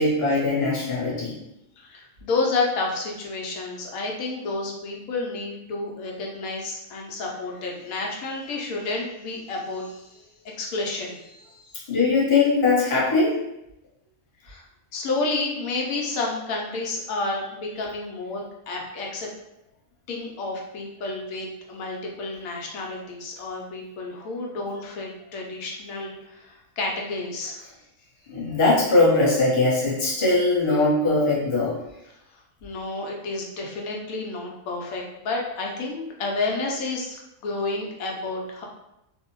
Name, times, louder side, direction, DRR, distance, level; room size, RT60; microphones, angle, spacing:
voice 1, 0.0-1.4 11.9-13.4 28.3-31.8, left 3 dB, 30° left, -7 dB, 0.6 m, -21 dB
voice 2, 1.8-11.8 14.4-14.6 14.9-19.3 20.1-27.6 32.3-38.6, left 3 dB, 85° left, -1 dB, 1.0 m, -30 dB
2.6 x 2.0 x 2.9 m, 0.86 s
omnidirectional pair, 1.5 m